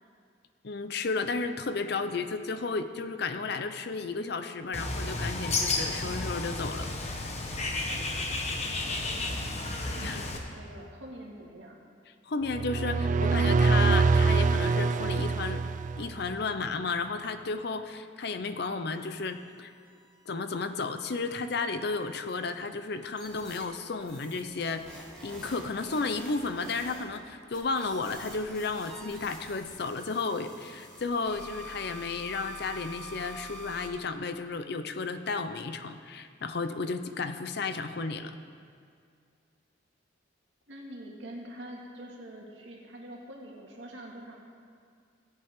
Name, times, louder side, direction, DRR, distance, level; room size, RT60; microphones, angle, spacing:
voice 1, 0.6-6.9 10.0-10.3 12.3-15.6 16.0-19.7 20.3-24.8 25.2-38.3, left 4 dB, 60° left, 9 dB, 0.6 m, -33 dB
Bird, 4.7-10.4, left 2 dB, 35° left, 1.0 m, -32 dB
voice 2, 8.6-9.6 9.9-11.8 40.7-44.4, right 1 dB, 85° right, -2 dB, 2.0 m, -45 dB
sound 1, 12.5-16.4, right 4 dB, 45° right, 0.3 m, -24 dB
sound 2, 18.9-21.5 21.8-22.4 23.2-23.6 24.0-27.2 27.5-33.9, equal, 5° left, 2.3 m, -47 dB
16.5 x 8.3 x 3.7 m, 2.2 s
head